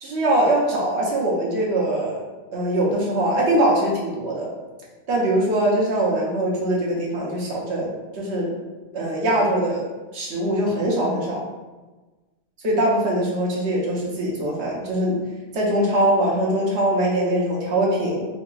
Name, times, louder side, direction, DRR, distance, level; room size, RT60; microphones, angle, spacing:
voice 1, 0.0-2.2 2.5-4.5 5.1-8.5 8.9-9.8 10.1-11.4 12.6-15.2 15.5-18.3, right 1 dB, 70° right, -4 dB, 1.1 m, -22 dB
4.1 x 2.8 x 2.3 m, 1.2 s
omnidirectional pair, 1.2 m